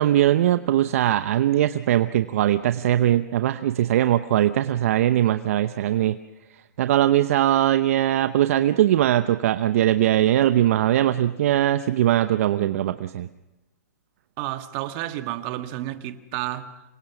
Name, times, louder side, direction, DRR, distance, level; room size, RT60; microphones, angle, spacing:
voice 1, 0.0-6.2 6.8-13.3, right 12 dB, 55° right, 0.8 m, -20 dB
voice 2, 14.4-16.8, right 14 dB, 35° right, 1.6 m, -31 dB
26.5 x 23.0 x 6.1 m
hypercardioid pair, 140°, 9 cm